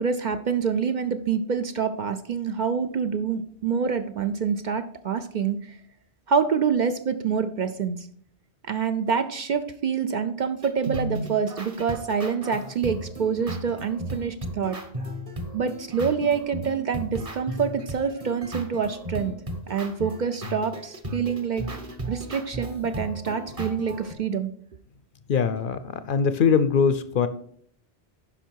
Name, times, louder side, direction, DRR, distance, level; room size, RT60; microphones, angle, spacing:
voice 1, 0.0-5.8 6.3-8.1 8.7-14.8 15.5-19.3 19.7-21.6 22.1-24.5, right 6 dB, 55° right, 9 dB, 0.6 m, -26 dB
sound 1, 10.6-24.1, right 1 dB, 35° right, 1.2 m, -36 dB
voice 2, 25.3-27.3, left 6 dB, 60° left, 12 dB, 0.7 m, -22 dB
9.9 x 5.6 x 4.6 m, 0.63 s
omnidirectional pair, 1.1 m